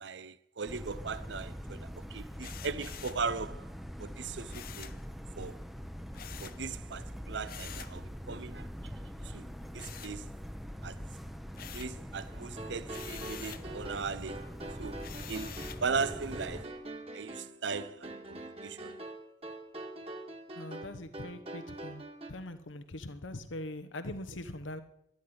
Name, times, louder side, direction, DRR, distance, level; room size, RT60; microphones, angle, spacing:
voice 1, 0.0-3.7 4.0-4.9 5.4-5.6 6.4-8.7 9.3-9.5 9.7-10.3 10.8-11.0 11.7-14.4 14.8-15.0 15.3-15.5 15.8-16.7 17.1-18.9, right 5 dB, 70° right, 0.6 m, -38 dB
sound 1, 0.7-16.6, equal, ahead, 0.8 m, -43 dB
sound 2, 2.4-3.3 4.5-5.0 6.1-6.6 7.4-8.0 9.8-10.6 11.0-12.0 12.9-13.7 15.0-15.9, left 10 dB, 50° left, 0.7 m, -47 dB
sound 3, 12.3-22.3, right 2 dB, 30° right, 2.0 m, -44 dB
voice 2, 20.6-22.0 22.3-24.8, left 1 dB, 85° left, 1.1 m, -42 dB
13.0 x 11.5 x 9.7 m
head